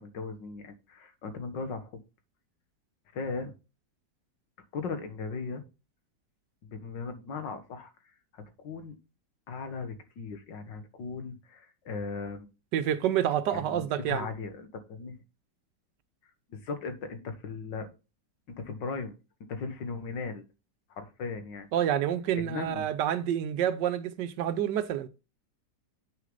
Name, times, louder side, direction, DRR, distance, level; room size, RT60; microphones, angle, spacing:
voice 1, 0.0-2.0 3.1-3.5 4.7-5.6 6.6-7.9 8.3-9.0 9.5-12.5 13.5-15.2 16.5-17.9 18.5-19.2 19.5-20.4 20.9-21.7 22.3-22.9, left 4 dB, 85° left, 2.0 m, -37 dB
voice 2, 12.7-14.3 21.7-25.1, right 10 dB, 75° right, 1.3 m, -28 dB
8.5 x 6.3 x 3.8 m
omnidirectional pair, 1.9 m